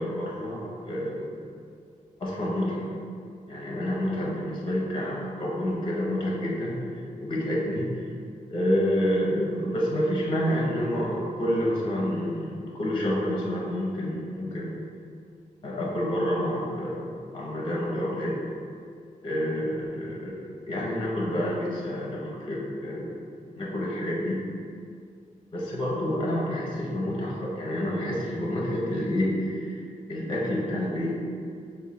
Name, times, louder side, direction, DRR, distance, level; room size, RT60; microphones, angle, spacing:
voice 1, 0.0-1.4 2.2-2.9 3.5-6.8 7.2-7.9 8.5-14.7 15.6-17.1 17.3-18.4 19.2-23.2 23.6-24.4 25.5-29.8 30.1-31.2, equal, 35° left, -3 dB, 0.6 m, -28 dB
4.6 x 2.2 x 4.2 m, 2.3 s
wide cardioid pair, 180°, 15 cm